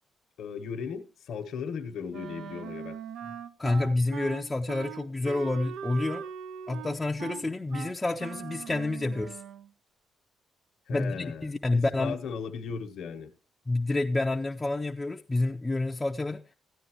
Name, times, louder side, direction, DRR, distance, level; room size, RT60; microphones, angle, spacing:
voice 1, 0.4-3.0 10.9-13.3, left 6 dB, 70° left, 1.1 m, -36 dB
Wind instrument woodwind instrument, 2.1-9.7, right 8 dB, 85° right, 0.6 m, -41 dB
voice 2, 3.6-6.2 6.7-9.4 10.9-12.1 13.7-16.4, left 2 dB, 15° left, 0.5 m, -29 dB
14.0 x 9.5 x 3.0 m
cardioid pair, 90°, 0 cm